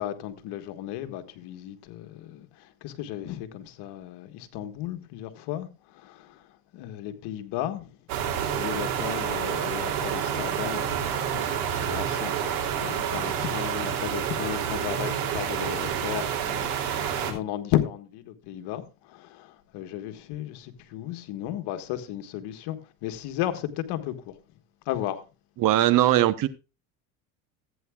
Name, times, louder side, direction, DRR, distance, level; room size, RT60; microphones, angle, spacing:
voice 1, 0.0-6.4 6.7-7.9 8.5-24.3 24.9-25.2, left 12 dB, 65° left, 1.6 m, -34 dB
sound 1, 8.1-17.3, right 8 dB, 75° right, 3.1 m, -28 dB
voice 2, 25.6-26.5, right 14 dB, 50° right, 0.9 m, -20 dB
15.0 x 9.3 x 2.4 m
supercardioid pair, 105°, 43 cm